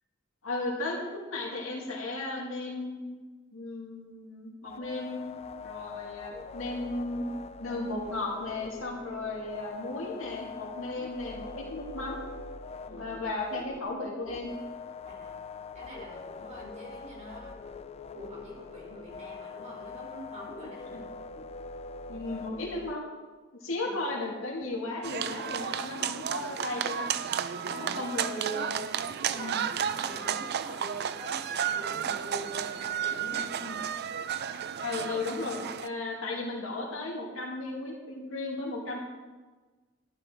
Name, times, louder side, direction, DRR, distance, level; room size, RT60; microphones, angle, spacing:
voice 1, 0.4-3.1 3.5-5.2 5.6-7.2 7.6-12.2 12.9-14.5 20.9-21.0 22.1-23.1 23.6-27.1 27.7-28.8 29.3-29.7 33.3-33.8 34.8-39.0, left 2 dB, 75° left, -2 dB, 2.5 m, -35 dB
sound 1, 4.6-22.9, left 4 dB, 30° left, 0.4 m, -43 dB
voice 2, 15.1-15.4 15.7-17.6 18.1-21.1 23.8-23.9 27.5-28.1 28.5-33.7, equal, 35° right, -3 dB, 4.3 m, -46 dB
sound 2, 25.0-35.9, right 8 dB, 50° right, 0.4 m, -33 dB
11.5 x 11.0 x 4.6 m, 1.3 s
head